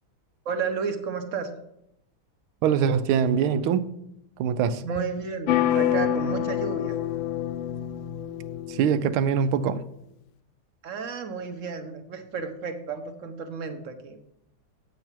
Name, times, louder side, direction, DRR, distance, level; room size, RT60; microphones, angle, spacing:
voice 1, 0.4-1.5 4.8-7.0 10.8-14.2, right 5 dB, 50° right, 7 dB, 1.0 m, -32 dB
voice 2, 2.6-3.9 4.4-4.8 8.7-9.8, right 7 dB, 85° right, 13 dB, 1.5 m, -23 dB
sound 1, 5.5-9.3, left 11 dB, 75° left, 1.3 m, -27 dB
9.0 x 7.8 x 4.5 m, 0.80 s
omnidirectional pair, 2.2 m